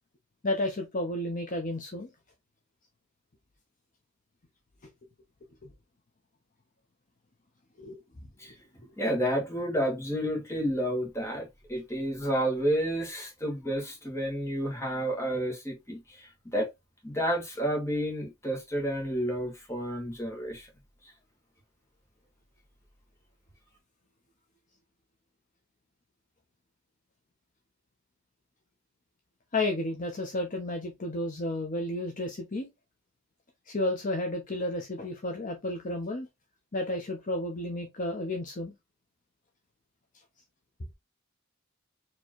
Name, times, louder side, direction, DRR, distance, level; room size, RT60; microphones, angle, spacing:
voice 1, 0.4-2.1 5.6-5.7 7.8-8.0 29.5-32.7 33.7-36.3 36.7-38.7, left 1 dB, 40° left, 0.8 m, -32 dB
voice 2, 9.0-16.7 17.0-20.7, equal, 15° left, 1.5 m, -30 dB
4.4 x 3.0 x 3.0 m
head